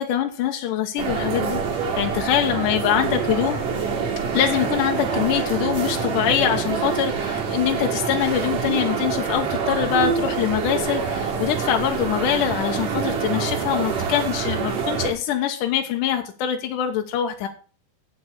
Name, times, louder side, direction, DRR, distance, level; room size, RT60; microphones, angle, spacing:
voice 1, 0.0-1.6 2.0-3.6 4.3-17.5, left 10 dB, 75° left, 3 dB, 2.5 m, -24 dB
sound 1, 1.0-15.1, right 6 dB, 75° right, 4.2 m, -26 dB
8.8 x 8.3 x 6.5 m, 0.38 s
omnidirectional pair, 3.8 m